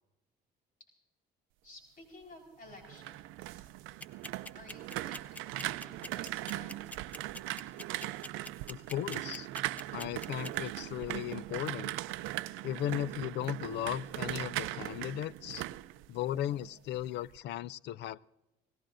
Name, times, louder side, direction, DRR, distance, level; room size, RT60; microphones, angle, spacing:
voice 1, 1.6-3.7 4.5-6.9, left 2 dB, 45° left, 1 dB, 4.6 m, -54 dB
sound 1, 2.7-16.7 17.0-17.4, right 16 dB, 85° right, 0.5 m, -39 dB
sound 2, 4.0-10.7, left 1 dB, 5° left, 0.7 m, -43 dB
voice 2, 8.7-9.5 9.9-11.9 12.6-15.6 16.1-18.2, left 12 dB, 60° left, 21 dB, 0.4 m, -36 dB
29.5 x 18.0 x 2.6 m, 0.95 s
cardioid pair, 115°, 20 cm